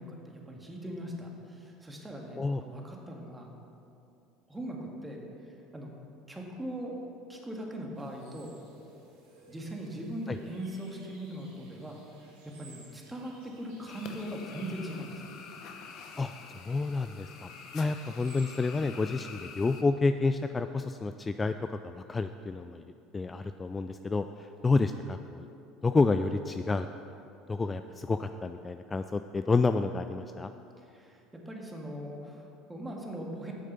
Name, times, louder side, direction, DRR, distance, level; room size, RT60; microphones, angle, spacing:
voice 1, 0.0-3.5 4.5-5.9 6.3-7.0 7.3-8.6 9.5-15.3 17.8-18.0 30.8-33.5, right 1 dB, 15° right, 0 dB, 1.9 m, -40 dB
sound 1, 7.9-18.8, right 3 dB, 85° right, 2.3 m, -58 dB
sound 2, 13.9-19.8, left 5 dB, 60° left, 1.0 m, -47 dB
voice 2, 16.2-17.5 17.7-22.8 23.1-25.5 25.8-26.9 27.5-30.5, left 3 dB, 25° left, 9 dB, 0.3 m, -29 dB
8.9 x 6.5 x 6.7 m, 2.7 s
hypercardioid pair, 75°, 0 cm